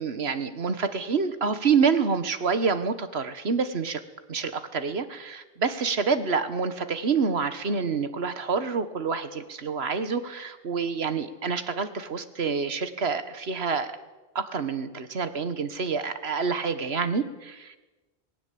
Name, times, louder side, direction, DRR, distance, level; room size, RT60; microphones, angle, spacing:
voice 1, 0.0-4.0 4.3-14.0 14.4-17.8, right 5 dB, 80° right, 11 dB, 1.6 m, -27 dB
19.5 x 17.5 x 8.5 m, 1.2 s
omnidirectional pair, 1.1 m